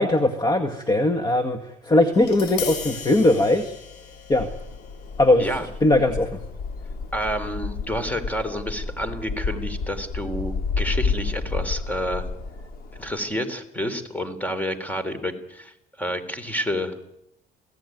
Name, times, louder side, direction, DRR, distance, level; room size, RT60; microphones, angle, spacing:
voice 1, 0.0-3.7 4.3-4.5 5.2-5.5 5.8-6.4, left 1 dB, 25° left, 7 dB, 1.9 m, -20 dB
Tap, 2.1-8.3, left 7 dB, 85° left, 7.1 m, -39 dB
sound 1, 4.3-13.2, left 4 dB, 65° left, 4.2 m, -31 dB
voice 2, 7.1-12.3 13.0-17.0, equal, 10° left, 12 dB, 3.7 m, -29 dB
26.5 x 17.5 x 9.4 m, 0.83 s
cardioid pair, 110°, 17 cm